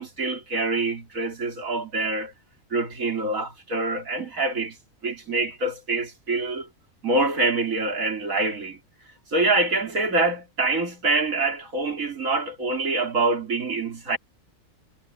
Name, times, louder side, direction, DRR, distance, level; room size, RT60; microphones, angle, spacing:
voice 1, 0.0-2.3 2.7-4.8 5.0-6.7 7.0-8.8 9.3-14.2, right 2 dB, 85° right, 3.8 m, -25 dB
omnidirectional pair, 1.4 m